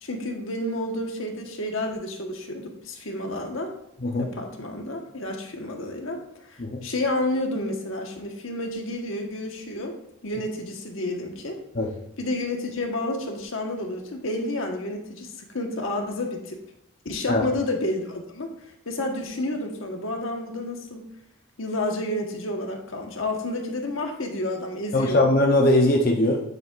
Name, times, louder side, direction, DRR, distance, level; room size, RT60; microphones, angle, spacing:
voice 1, 0.0-3.7 4.2-6.2 6.5-10.0 10.2-11.6 12.2-16.6 17.0-18.5 18.8-21.0 21.6-25.2, left 1 dB, 80° left, 2 dB, 1.4 m, -30 dB
voice 2, 24.9-26.4, left 1 dB, 45° left, 0 dB, 0.8 m, -20 dB
9.4 x 7.5 x 2.5 m, 0.78 s
head